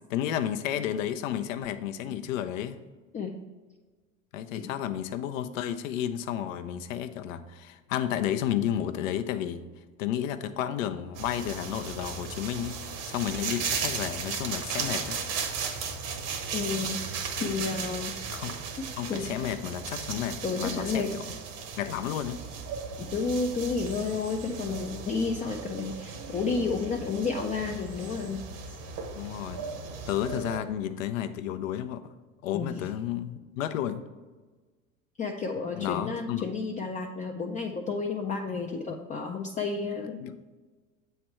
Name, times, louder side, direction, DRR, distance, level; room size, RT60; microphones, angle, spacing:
voice 1, 0.1-2.8 4.3-9.6 10.0-15.2 18.3-18.6 19.0-21.1 21.8-22.4 29.1-29.7 30.1-32.0 32.4-34.1 35.7-36.4 40.2-40.3, left 10 dB, 75° left, 10 dB, 0.6 m, -32 dB
sound 1, 11.2-30.6, right 5 dB, 50° right, 1.0 m, -36 dB
voice 2, 16.5-17.0 17.4-18.3 19.1-19.3 20.4-21.1 23.0-28.8 32.5-32.7 35.2-40.2, left 4 dB, 20° left, 1 dB, 0.4 m, -31 dB
7.6 x 3.3 x 4.3 m, 1.3 s
hypercardioid pair, 85°, 40 cm